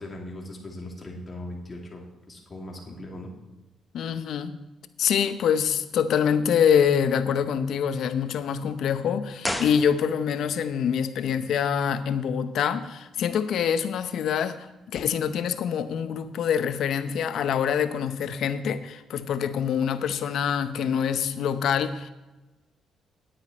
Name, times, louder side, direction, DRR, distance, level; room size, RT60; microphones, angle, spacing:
voice 1, 0.0-3.3, left 1 dB, 25° left, -1 dB, 2.7 m, -39 dB
voice 2, 3.9-4.6 5.0-22.1, left 8 dB, 75° left, 11 dB, 0.7 m, -25 dB
sound 1, 9.4-10.5 10.7-10.8, left 1 dB, 5° left, 1.0 m, -33 dB
10.5 x 9.2 x 4.3 m, 1.1 s
cardioid pair, 90°, 0 cm